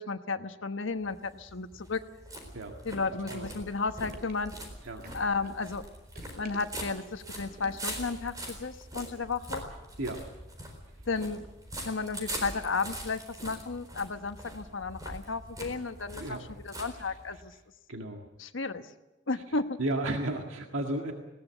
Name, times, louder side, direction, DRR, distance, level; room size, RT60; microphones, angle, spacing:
voice 1, 0.0-2.0 2.8-4.5 5.1-5.8 6.4-9.6 11.1-11.5 11.8-17.5 18.4-18.9 19.3-19.8, left 4 dB, 75° left, 9 dB, 1.2 m, -33 dB
sound 1, 1.0-17.5, right 1 dB, 20° right, 4.1 m, -43 dB
sound 2, 3.8-8.6, right 1 dB, 50° right, 2.3 m, -52 dB
voice 2, 17.9-18.2 19.8-21.1, right 1 dB, 90° right, 3 dB, 1.9 m, -33 dB
20.0 x 18.0 x 8.1 m, 1.0 s
head